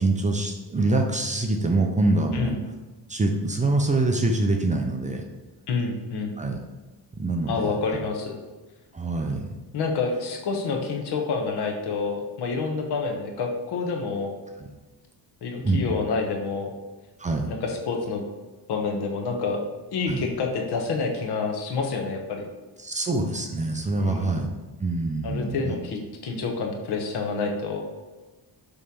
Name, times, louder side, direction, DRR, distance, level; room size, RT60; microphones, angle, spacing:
voice 1, 0.0-2.6 3.1-5.2 6.4-6.6 7.1-7.7 8.9-9.5 14.6-14.7 15.6-15.9 17.2-17.5 20.1-20.3 22.8-24.5 24.8-25.8, right 2 dB, 20° right, 2 dB, 0.6 m, -25 dB
voice 2, 5.7-6.3 7.5-8.4 9.7-14.4 15.4-16.7 17.5-18.2 18.7-19.6 19.9-22.5 24.0-24.3 25.2-27.9, left 4 dB, 75° left, 2 dB, 1.2 m, -28 dB
7.0 x 3.4 x 5.4 m, 1.2 s
cardioid pair, 155°, 40 cm